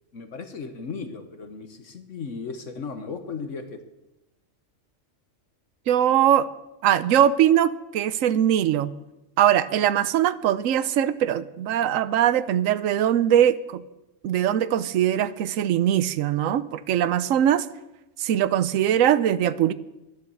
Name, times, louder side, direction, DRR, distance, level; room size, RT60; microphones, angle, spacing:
voice 1, 0.1-3.8, left 5 dB, 65° left, 8 dB, 1.5 m, -36 dB
voice 2, 5.9-6.5 6.8-8.9 9.4-13.8 14.2-17.7 18.2-19.7, right 10 dB, 80° right, 15 dB, 1.0 m, -21 dB
13.0 x 10.5 x 7.1 m, 0.95 s
omnidirectional pair, 1.4 m